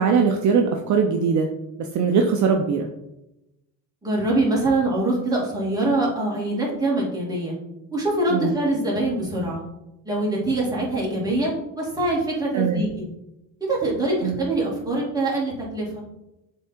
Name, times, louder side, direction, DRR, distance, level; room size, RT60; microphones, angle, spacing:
voice 1, 0.0-1.5 1.8-2.9 8.3-8.5 12.5-12.8 14.2-14.3, right 5 dB, 50° right, 4 dB, 0.7 m, -21 dB
voice 2, 4.0-7.5 7.9-9.6 10.0-13.0 13.7-16.0, right 2 dB, 10° right, -5 dB, 2.5 m, -24 dB
7.0 x 3.7 x 4.5 m, 0.91 s
cardioid pair, 120°, 39 cm